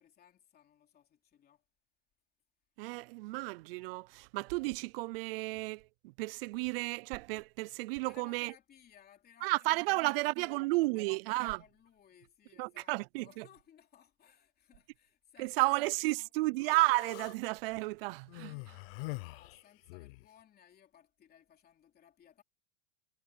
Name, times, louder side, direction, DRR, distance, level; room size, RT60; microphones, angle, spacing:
voice 1, 0.0-1.6 8.0-16.3 18.1-18.2 18.4-22.4, left 9 dB, 25° left, 3.3 m, -62 dB
voice 2, 2.8-8.5 9.4-11.6 12.6-13.5 15.4-18.5, right 22 dB, 50° right, 0.4 m, -32 dB
Human voice, 16.6-17.4 18.3-20.3, left 25 dB, 50° left, 0.8 m, -44 dB
supercardioid pair, 145°, 39 cm